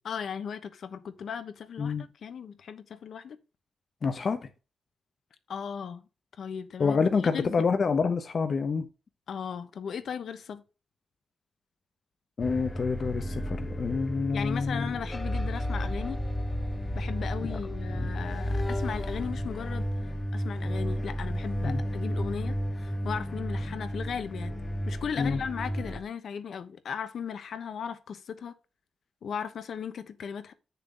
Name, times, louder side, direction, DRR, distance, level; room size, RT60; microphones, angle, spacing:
voice 1, 0.0-3.4 5.5-6.0 6.4-7.0 7.2-7.5 9.3-10.6 14.3-16.2 16.9-24.5 24.9-28.5 29.2-30.5, left 7 dB, 70° left, 1.0 m, -37 dB
voice 2, 4.0-4.5 6.8-8.9 12.4-14.9 17.5-17.6 17.9-18.1 21.6-21.8 25.2-25.4, left 5 dB, 45° left, 0.8 m, -27 dB
sound 1, 12.4-26.0, equal, 20° left, 1.2 m, -32 dB
9.0 x 6.8 x 3.8 m
wide cardioid pair, 140°, 0 cm